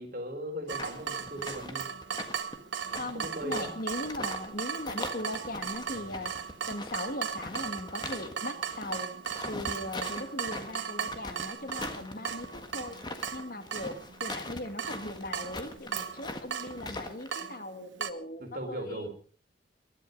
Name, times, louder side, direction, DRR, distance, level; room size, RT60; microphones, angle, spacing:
voice 1, 0.0-1.9 2.9-3.7 5.9-6.2 18.4-19.1, right 1 dB, 45° right, 3 dB, 3.9 m, -38 dB
sound 1, 0.7-4.5 4.8-8.3 8.6-17.3, left 2 dB, 20° left, 1.6 m, -42 dB
Water tap faucet / Drip, 0.7-18.1, right 6 dB, 75° right, 1.0 m, -37 dB
voice 2, 2.9-6.4 6.7-9.1 9.5-13.0 13.3-19.1, left 1 dB, 50° left, 9 dB, 1.7 m, -39 dB
21.5 x 11.5 x 5.3 m, 0.43 s
head